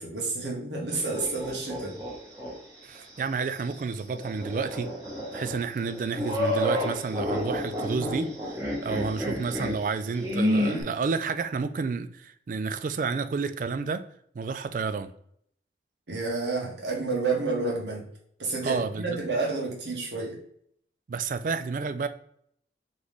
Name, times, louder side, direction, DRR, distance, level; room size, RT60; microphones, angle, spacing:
voice 1, 0.0-2.0 16.1-18.1 18.4-20.3, right 3 dB, 90° right, -2 dB, 1.4 m, -30 dB
sound 1, 0.9-2.5 2.9-3.0 4.1-10.8, left 1 dB, 20° right, 1.3 m, -30 dB
voice 2, 2.8-4.9 5.3-8.3 8.8-14.0 14.3-15.1 18.6-19.2 21.1-22.1, right 4 dB, 45° right, 11 dB, 0.3 m, -30 dB
4.0 x 3.1 x 3.4 m, 0.67 s
head